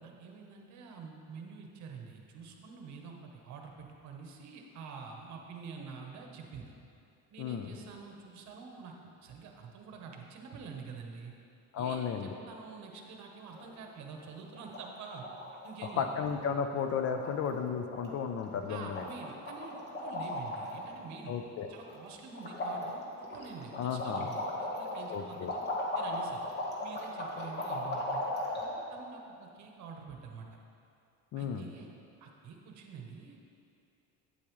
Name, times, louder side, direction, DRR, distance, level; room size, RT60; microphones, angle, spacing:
voice 1, 0.0-6.7 7.3-11.3 11.8-15.3 15.6-16.1 18.7-21.3 21.7-25.6 25.9-26.4 26.8-30.5 31.3-31.9 32.2-33.4, right 5 dB, 55° right, 2 dB, 1.0 m, -47 dB
voice 2, 7.4-7.7 11.7-12.3 16.0-19.1 21.3-21.7 23.8-24.3 25.1-25.5 31.3-31.7, left 7 dB, 50° left, 7 dB, 0.5 m, -34 dB
sound 1, 13.4-13.9 14.2-14.3 14.5-14.8 15.1-15.9 16.2-16.4 16.7-16.8 17.1-17.6 17.9-18.1 18.4-18.7 18.9-20.9 21.3-22.0 22.3-28.7, left 1 dB, 30° left, 1.3 m, -37 dB
8.6 x 8.5 x 3.1 m, 2.6 s
cardioid pair, 135°, 33 cm